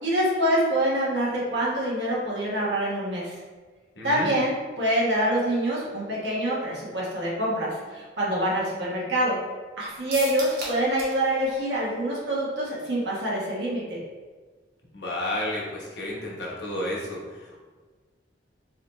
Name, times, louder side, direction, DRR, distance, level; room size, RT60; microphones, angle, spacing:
voice 1, 0.0-3.4 4.0-9.4 9.8-14.0, right 1 dB, 85° right, -6 dB, 1.2 m, -26 dB
voice 2, 3.9-4.3 14.9-17.6, left 1 dB, 65° left, -4 dB, 1.0 m, -32 dB
sound 1, 10.1-11.2 11.5-11.6 11.9-12.0, right 2 dB, 55° right, 1.0 m, -35 dB
4.0 x 2.7 x 3.1 m, 1.4 s
head